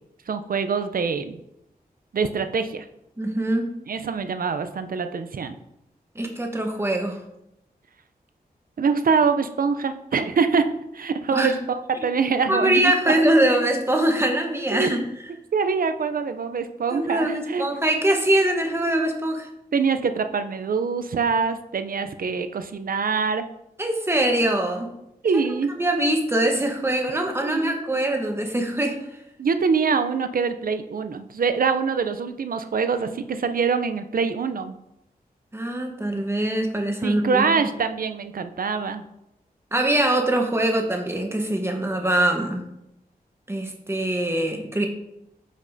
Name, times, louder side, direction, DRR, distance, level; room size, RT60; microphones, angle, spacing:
voice 1, 0.3-1.4 2.1-2.9 3.9-5.6 8.8-13.2 14.7-15.0 15.5-17.6 19.7-23.4 25.2-25.7 27.4-27.8 29.4-34.8 37.0-39.0, right 5 dB, 65° right, 9 dB, 0.5 m, -24 dB
voice 2, 3.2-3.7 6.1-7.2 11.3-11.6 12.0-12.1 12.5-15.0 16.9-19.5 23.8-24.9 25.3-25.4 25.8-28.9 35.5-37.7 39.7-42.6 43.5-44.9, right 1 dB, 15° right, 2 dB, 1.1 m, -23 dB
8.6 x 5.2 x 2.7 m, 0.84 s
wide cardioid pair, 90°, 16 cm